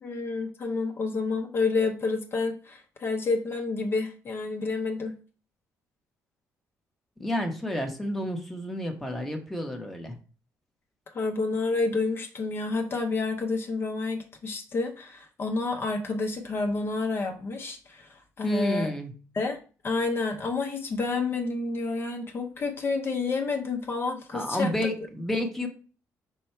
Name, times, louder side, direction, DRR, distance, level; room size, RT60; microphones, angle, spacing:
voice 1, 0.0-5.1 11.1-18.9 19.3-19.6 19.8-24.7, left 3 dB, 40° left, 3 dB, 0.6 m, -29 dB
voice 2, 7.2-10.1 18.4-19.1 24.3-25.7, equal, 5° left, 2 dB, 0.8 m, -30 dB
5.4 x 2.2 x 4.3 m, 0.37 s
cardioid pair, 115°, 6 cm